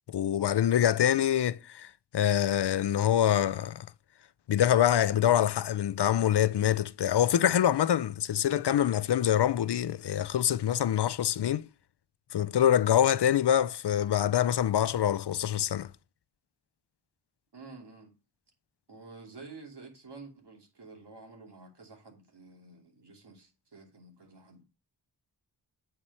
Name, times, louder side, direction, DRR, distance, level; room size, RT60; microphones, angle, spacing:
voice 1, 0.1-3.9 4.5-11.6 12.3-15.9, left 10 dB, 70° left, 0.5 m, -25 dB
voice 2, 17.5-18.1 18.9-24.6, right 3 dB, 70° right, 2.9 m, -50 dB
8.6 x 4.7 x 5.4 m
wide cardioid pair, 90°, 43 cm